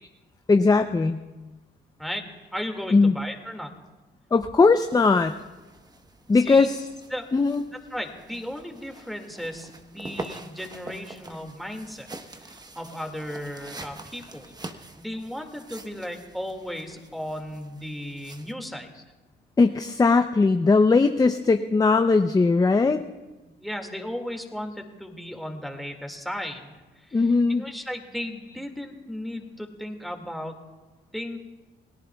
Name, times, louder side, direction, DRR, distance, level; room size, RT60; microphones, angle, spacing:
voice 1, 0.5-1.2 2.9-3.1 4.3-5.3 6.3-6.8 7.3-7.6 19.6-23.0 27.1-27.6, left 4 dB, 20° left, 7 dB, 0.6 m, -19 dB
voice 2, 2.5-3.7 6.3-6.7 7.1-7.3 7.9-12.1 12.4-14.4 15.0-18.9 23.4-30.5 31.1-31.4, equal, ahead, 3 dB, 2.1 m, -35 dB
sound 1, 4.7-18.5, right 2 dB, 20° right, 1.1 m, -44 dB
29.0 x 18.0 x 2.3 m, 1.2 s
cardioid pair, 90°, 20 cm